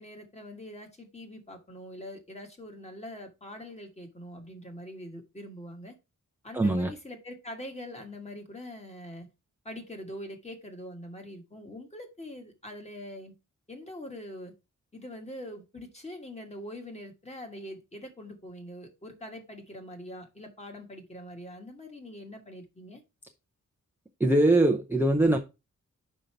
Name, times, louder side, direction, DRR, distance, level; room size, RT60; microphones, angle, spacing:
voice 1, 0.0-6.0 6.4-9.3 9.6-13.3 13.7-14.5 14.9-23.0, left 1 dB, 20° left, 1.5 m, -43 dB
voice 2, 6.5-6.9 24.2-25.4, right 1 dB, 5° right, 0.6 m, -22 dB
5.5 x 5.2 x 4.5 m
wide cardioid pair, 160°, 31 cm